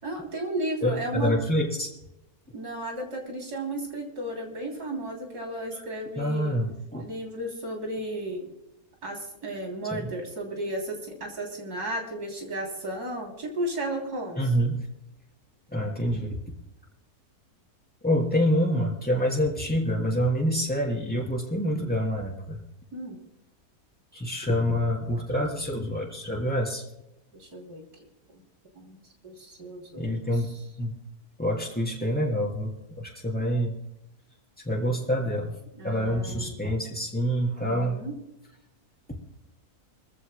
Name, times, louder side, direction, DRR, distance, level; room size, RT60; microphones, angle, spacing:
voice 1, 0.0-1.4 2.5-6.6 7.0-8.5 9.0-14.4 22.9-23.2 27.3-27.8 28.3-28.4 28.8-30.4 35.7-36.6 37.6-38.1, right 1 dB, 75° right, 1 dB, 3.7 m, -34 dB
voice 2, 0.8-1.9 5.7-5.8 6.2-7.1 9.9-10.0 14.4-14.8 15.7-16.4 18.0-22.6 24.1-26.8 30.0-30.5 30.8-30.9 31.4-33.7 34.7-35.5 35.8-38.0, equal, 5° left, -1 dB, 3.6 m, -27 dB
24.5 x 15.0 x 2.2 m, 0.86 s
omnidirectional pair, 1.7 m